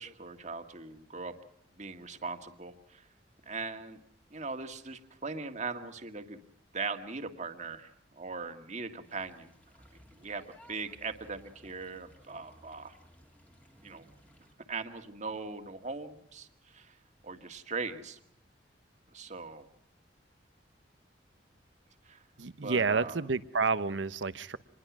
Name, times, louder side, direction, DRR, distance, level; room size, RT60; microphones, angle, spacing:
voice 1, 0.0-1.3 1.8-3.0 3.5-4.0 4.3-6.4 6.7-9.5 10.2-10.4 10.7-12.9 13.8-14.1 14.7-17.0 17.2-18.2 19.1-19.6 22.1-22.2 22.6-23.2, right 4 dB, 40° right, 7 dB, 1.8 m, -40 dB
sound 1, 9.0-14.5, equal, 10° left, 2.0 m, -59 dB
voice 2, 22.4-24.6, right 4 dB, 85° right, 14 dB, 1.0 m, -30 dB
26.0 x 21.0 x 6.1 m, 0.76 s
head